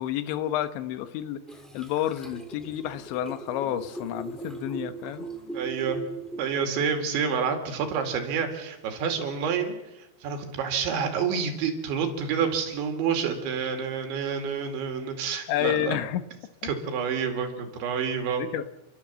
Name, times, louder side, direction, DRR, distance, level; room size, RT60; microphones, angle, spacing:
voice 1, 0.0-1.4 1.7-5.3 15.5-16.2 16.6-16.7 18.4-18.7, left 12 dB, 85° left, 11 dB, 3.3 m, -30 dB
sound 1, 1.5-6.8, right 3 dB, ahead, 0.5 m, -39 dB
voice 2, 5.5-6.0 6.4-16.0 16.6-18.4, right 6 dB, 85° right, 5 dB, 4.7 m, -28 dB
29.5 x 12.0 x 7.4 m, 0.98 s
omnidirectional pair, 5.2 m